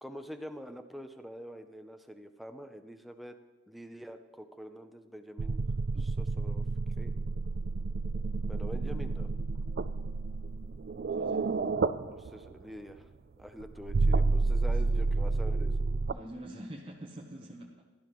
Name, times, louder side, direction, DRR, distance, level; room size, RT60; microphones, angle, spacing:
voice 1, 0.0-3.4 3.7-5.6 6.0-6.7 7.0-7.1 8.5-9.3 12.1-13.1 13.4-15.7, equal, ahead, 6 dB, 0.6 m, -45 dB
sound 1, 5.4-12.6 13.6-16.1, right 3 dB, 55° right, 0.4 m, -30 dB
voice 2, 11.1-11.5 14.8-15.1 16.1-17.8, right 1 dB, 30° right, -2 dB, 0.9 m, -45 dB
17.0 x 11.5 x 3.0 m, 1.3 s
head